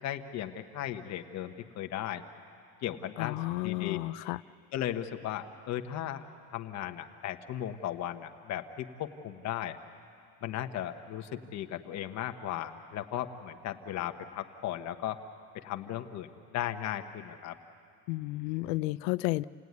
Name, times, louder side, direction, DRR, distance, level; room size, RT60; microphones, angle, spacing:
voice 1, 0.0-2.2 2.8-3.4 3.6-4.0 4.7-9.8 10.4-15.2 15.5-17.6, left 11 dB, 35° left, 7 dB, 1.2 m, -36 dB
voice 2, 3.2-4.4 18.1-19.4, left 20 dB, 80° left, 16 dB, 0.6 m, -32 dB
29.5 x 18.0 x 9.5 m, 2.5 s
cardioid pair, 155°, 49 cm